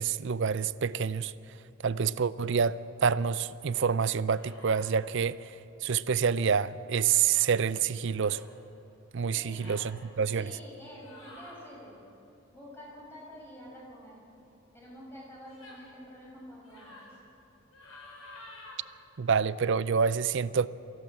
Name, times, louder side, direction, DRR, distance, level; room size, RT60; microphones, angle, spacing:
voice 1, 0.0-1.3 1.8-5.5 5.8-8.4 9.1-10.5 19.2-20.7, right 6 dB, 55° right, 0.5 m, -27 dB
sound 1, 4.2-4.9 6.5-6.7 8.1-8.5 9.4-9.9 10.9-11.6 15.5-15.9 16.6-17.1 17.7-18.8, left 2 dB, 90° left, 5.8 m, -50 dB
voice 2, 9.3-9.6 10.3-12.0 12.5-14.3 14.7-17.1, equal, 10° left, 6.8 m, -48 dB
24.0 x 16.0 x 7.7 m
head